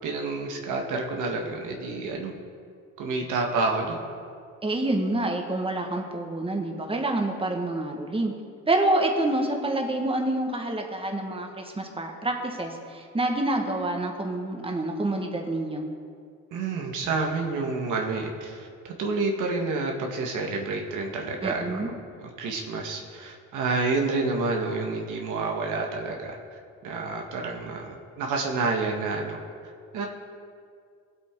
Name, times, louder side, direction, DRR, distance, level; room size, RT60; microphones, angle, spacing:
voice 1, 0.0-2.4 3.0-4.0 16.5-21.9 22.2-26.3 26.8-29.4 29.9-30.1, right 3 dB, 85° right, 1 dB, 1.5 m, -29 dB
voice 2, 4.6-8.3 8.7-15.9 21.4-21.9, right 2 dB, 20° right, 2 dB, 1.5 m, -27 dB
17.5 x 8.1 x 3.8 m, 2.2 s
cardioid pair, 90°, 30 cm